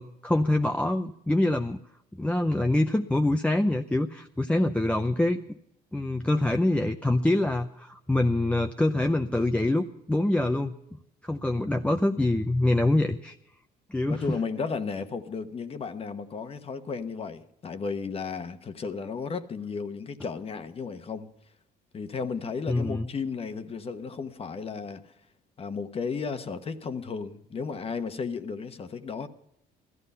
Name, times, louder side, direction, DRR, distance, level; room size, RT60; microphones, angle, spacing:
voice 1, 0.0-1.8 2.2-5.4 5.9-10.7 11.2-13.4 13.9-14.4 22.7-23.1, left 1 dB, 5° left, 0.6 m, -25 dB
voice 2, 14.1-21.3 21.9-25.1 25.6-29.3, left 5 dB, 35° left, 1.1 m, -34 dB
16.0 x 13.5 x 5.5 m
cardioid pair, 110°, 17 cm